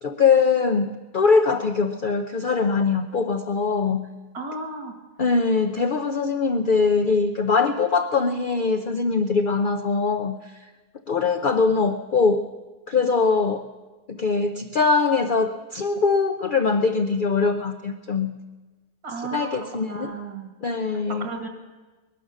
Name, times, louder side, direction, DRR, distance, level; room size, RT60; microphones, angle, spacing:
voice 1, 0.0-4.1 5.2-10.5 11.1-12.5 12.9-13.7 14.1-18.4 19.2-20.1 20.6-21.3, left 4 dB, 65° left, 7 dB, 0.5 m, -22 dB
voice 2, 4.3-4.9 19.0-19.5 19.8-20.5 20.9-21.5, right 4 dB, 70° right, 4 dB, 2.4 m, -34 dB
20.0 x 11.5 x 6.4 m, 1.3 s
omnidirectional pair, 1.7 m